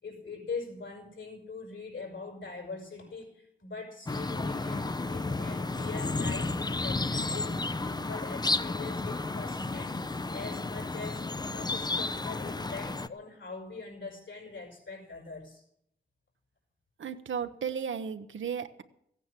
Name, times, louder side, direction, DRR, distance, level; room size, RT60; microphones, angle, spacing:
voice 1, 0.0-15.6, left 4 dB, 70° left, 1 dB, 6.1 m, -42 dB
sound 1, 4.1-13.1, left 3 dB, 20° left, 0.6 m, -32 dB
voice 2, 17.0-18.8, right 7 dB, 70° right, 9 dB, 1.0 m, -34 dB
15.0 x 9.3 x 7.5 m, 0.73 s
cardioid pair, 50°, 21 cm